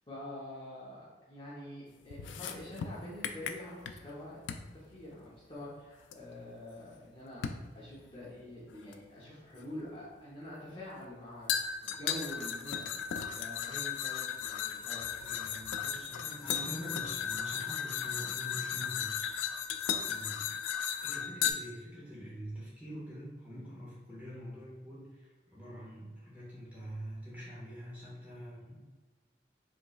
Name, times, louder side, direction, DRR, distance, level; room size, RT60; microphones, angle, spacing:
voice 1, 0.1-4.4 4.7-11.5 11.9-15.6, left 1 dB, 30° left, -8 dB, 0.8 m, -46 dB
sound 1, 2.1-4.1 4.5-4.7 6.1-6.2 7.4-7.7 8.9-9.0 11.5-21.5, left 8 dB, 85° left, 0.3 m, -35 dB
voice 2, 15.2-19.7 20.0-20.5 21.0-28.8, equal, 10° right, -8 dB, 1.5 m, -45 dB
5.2 x 3.1 x 2.3 m, 1.3 s
head